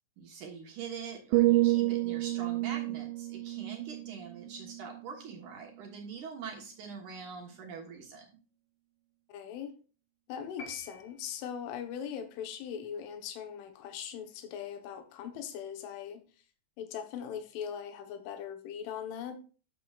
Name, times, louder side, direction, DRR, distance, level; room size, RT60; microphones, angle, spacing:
voice 1, 0.2-8.4, right 6 dB, 65° right, 2.0 m, -44 dB
sound 1, 1.3-5.3 5.7-6.0, right 19 dB, 80° right, 2.7 m, -30 dB
voice 2, 9.3-9.7 10.3-16.2 16.8-19.3, left 8 dB, 80° left, 3.6 m, -40 dB
sound 2, 10.6-11.8, left 2 dB, 60° left, 2.7 m, -49 dB
13.0 x 6.9 x 2.5 m
omnidirectional pair, 5.7 m